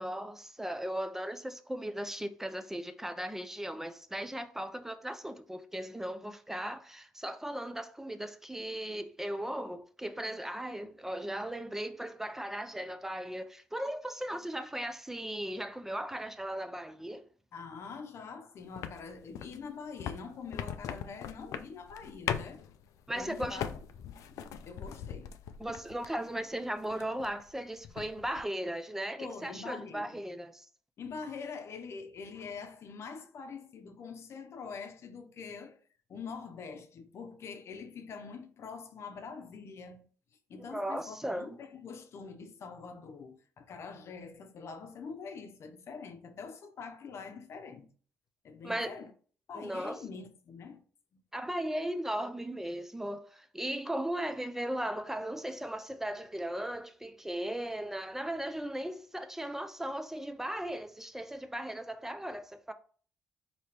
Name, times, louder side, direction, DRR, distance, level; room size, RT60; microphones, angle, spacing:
voice 1, 0.0-17.3 23.1-23.6 25.6-30.7 40.7-41.5 48.6-48.9 49.5-50.0 51.3-62.7, right 1 dB, 5° right, 0.4 m, -37 dB
voice 2, 17.5-22.6 23.1-23.7 24.1-24.4 24.6-25.3 29.2-30.2 31.0-35.8 36.1-40.1 40.5-47.9 48.4-49.1 49.5-50.8 51.1-51.2, left 5 dB, 55° left, 0.7 m, -44 dB
sound 1, 18.8-26.3 26.7-27.5 27.8-28.4, left 9 dB, 80° left, 0.4 m, -40 dB
4.3 x 2.9 x 3.3 m
cardioid pair, 105°, 5 cm